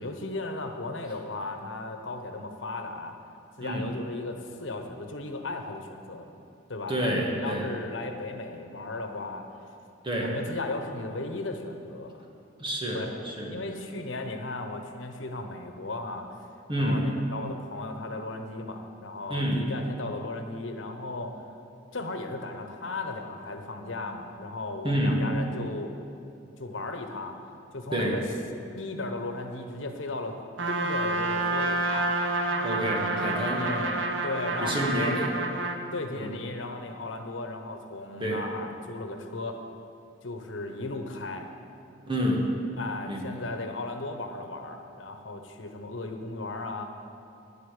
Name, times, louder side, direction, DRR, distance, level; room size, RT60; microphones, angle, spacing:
voice 1, 0.0-3.2 3.6-6.3 6.7-9.5 10.2-12.2 12.9-13.1 13.5-16.4 16.8-21.4 21.9-26.0 26.6-27.3 27.7-28.2 28.7-30.4 30.7-32.1 33.5-34.0 34.2-35.2 35.9-39.6 40.2-41.5 42.8-46.8, left 2 dB, 90° left, 5 dB, 1.2 m, -36 dB
voice 2, 6.9-7.7 10.0-10.3 12.6-13.5 16.7-17.0 19.3-19.6 24.8-25.2 27.9-28.2 32.6-33.7 34.6-35.3 36.1-36.3 38.2-38.4 42.1-42.5 43.1-43.3, equal, 25° right, -1 dB, 1.8 m, -28 dB
Trumpet, 30.6-35.8, right 2 dB, 75° right, 1.1 m, -28 dB
10.5 x 8.3 x 8.4 m, 2.6 s
head